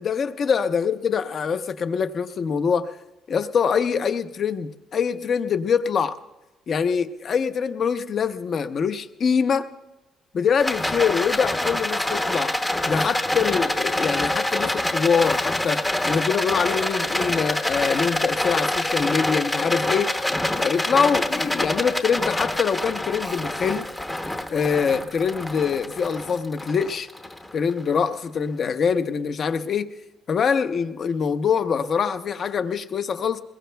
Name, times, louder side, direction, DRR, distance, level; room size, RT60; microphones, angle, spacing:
voice 1, 0.0-2.9 3.3-6.2 6.7-9.7 10.3-12.6 12.9-20.1 20.6-23.8 24.5-27.1 27.5-29.9 30.3-33.4, left 6 dB, 40° left, 9 dB, 0.7 m, -24 dB
Rattle, 10.6-28.0, left 1 dB, 10° left, 0.8 m, -26 dB
22.0 x 21.5 x 2.3 m, 1.1 s
cardioid pair, 160°, 0 cm